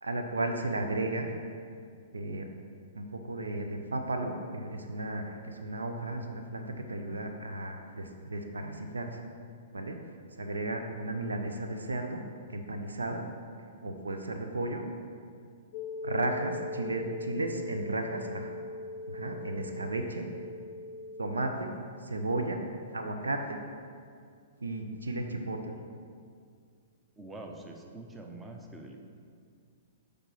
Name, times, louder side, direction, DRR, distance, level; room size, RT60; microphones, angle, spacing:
voice 1, 0.0-1.3 2.1-2.5 3.0-9.2 9.7-10.0 10.3-12.2 12.5-13.3 13.8-14.8 16.0-18.5 19.1-20.2 21.2-21.7 22.0-22.6 22.9-23.6 24.6-25.8, right 2 dB, 75° right, 4 dB, 0.7 m, -34 dB
sound 1, 15.7-21.5, left 2 dB, 40° left, 0.4 m, -40 dB
voice 2, 27.2-29.0, right 2 dB, 15° right, 2 dB, 0.8 m, -45 dB
6.7 x 5.0 x 5.8 m, 2.2 s
figure-of-eight pair, 110°, 0 cm